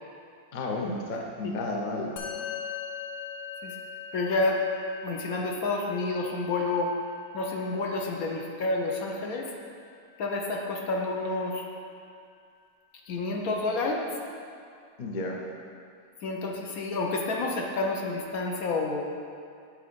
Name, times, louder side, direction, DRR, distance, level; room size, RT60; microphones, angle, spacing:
voice 1, 0.5-2.1 15.0-15.4, left 2 dB, 50° left, 0 dB, 0.6 m, -32 dB
Musical instrument, 2.2-11.7, left 7 dB, 90° left, 1.2 m, -42 dB
voice 2, 4.1-4.6 5.0-6.9 7.3-9.5 10.2-11.6 13.1-14.1 16.2-19.1, left 2 dB, 65° left, 1 dB, 1.1 m, -29 dB
7.7 x 4.0 x 5.1 m, 2.3 s
omnidirectional pair, 1.7 m